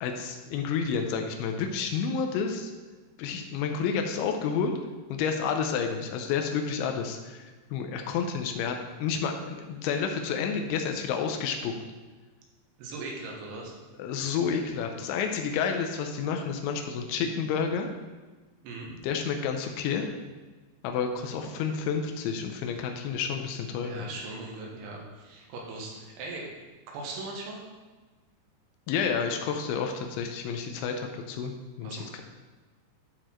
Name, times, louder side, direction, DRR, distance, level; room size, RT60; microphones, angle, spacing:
voice 1, 0.0-2.7 3.2-4.7 5.1-11.7 14.0-17.9 19.0-20.1 20.8-24.1 28.9-32.2, left 6 dB, 85° left, 4 dB, 3.1 m, -30 dB
voice 2, 12.8-13.8 18.6-18.9 23.8-26.5 26.9-27.6 31.8-32.1, right 2 dB, 85° right, -2 dB, 3.8 m, -39 dB
12.5 x 4.5 x 4.4 m, 1.3 s
omnidirectional pair, 5.2 m